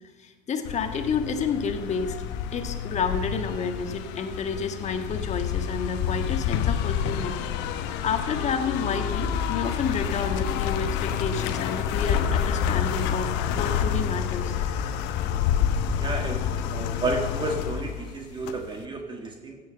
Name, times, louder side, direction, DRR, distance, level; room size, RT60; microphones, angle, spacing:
voice 1, 0.2-2.2 2.5-7.3 7.9-14.6, left 5 dB, 35° left, 6 dB, 1.6 m, -30 dB
sound 1, 0.6-18.8, left 8 dB, 55° left, 1.0 m, -28 dB
voice 2, 16.0-19.6, right 2 dB, 20° right, 2 dB, 1.8 m, -31 dB
15.5 x 6.4 x 6.7 m, 1.2 s
hypercardioid pair, 75°, 21 cm